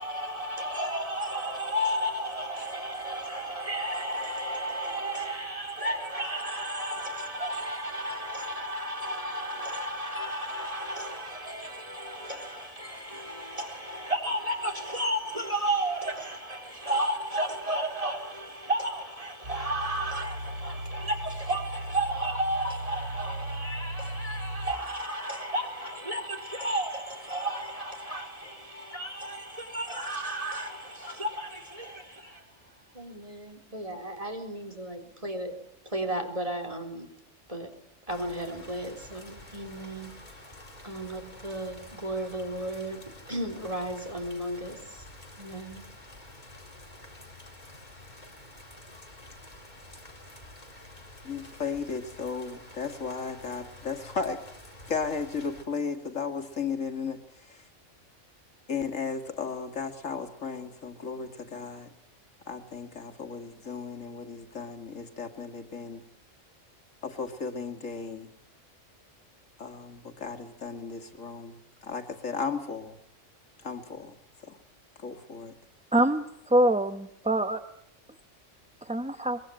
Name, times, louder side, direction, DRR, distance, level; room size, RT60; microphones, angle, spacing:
voice 1, 0.0-32.4 32.9-35.6 35.9-37.1 37.5-37.7 38.1-40.2 40.8-44.8 45.4-45.9, right 1 dB, 25° right, 4.1 m, -33 dB
sound 1, 19.4-24.7, right 1 dB, 60° right, 5.4 m, -37 dB
sound 2, 38.1-55.6, left 1 dB, 35° left, 4.0 m, -49 dB
voice 2, 51.2-54.4 54.9-57.6 58.7-61.9 62.5-66.0 67.0-68.3 69.6-73.0 73.6-74.1 74.4-74.6 75.0-75.5, left 5 dB, 85° left, 2.5 m, -35 dB
voice 3, 75.9-77.6 78.8-79.4, right 1 dB, 5° right, 0.8 m, -25 dB
24.0 x 22.0 x 9.0 m
omnidirectional pair, 1.3 m